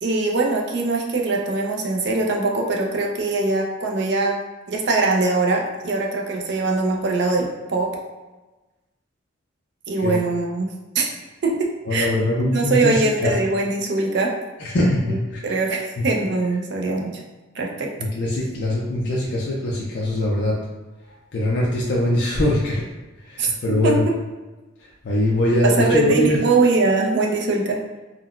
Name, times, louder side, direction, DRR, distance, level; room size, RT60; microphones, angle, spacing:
voice 1, 0.0-4.3 4.7-7.9 9.9-10.7 11.0-11.1 11.4-12.1 12.5-14.3 15.1-15.2 15.4-17.2 17.6-17.9 23.4-23.5 23.8-24.1 25.6-27.8, right 3 dB, 55° right, 0 dB, 0.4 m, -22 dB
voice 2, 11.9-13.3 14.6-15.4 16.0-16.1 18.0-20.5 21.3-22.8 23.3-24.0 25.0-26.4, left 1 dB, 55° left, -4 dB, 0.4 m, -22 dB
3.7 x 2.1 x 2.3 m, 1.2 s
head